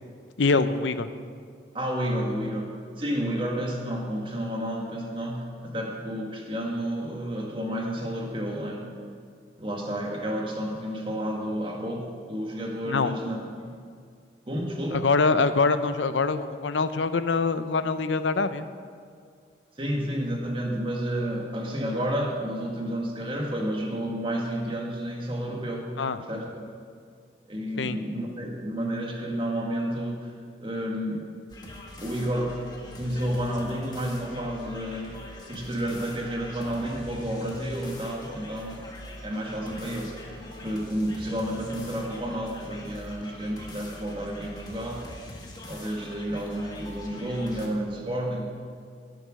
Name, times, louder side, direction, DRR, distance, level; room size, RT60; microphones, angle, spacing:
voice 1, 0.4-1.1 12.9-13.1 14.9-18.7 26.0-26.2 27.8-28.0, left 4 dB, 90° left, 11 dB, 0.6 m, -24 dB
voice 2, 1.7-8.9 9.6-13.7 14.5-15.0 19.8-26.0 26.3-26.6 27.5-30.3 30.6-31.3 32.0-32.6 33.0-35.2 35.5-38.9 39.2-40.1 40.6-45.1 45.7-48.5, equal, 30° right, 0 dB, 1.8 m, -31 dB
sound 1, 31.5-47.7, left 1 dB, 20° left, 1.5 m, -43 dB
16.5 x 7.8 x 6.4 m, 2.2 s
head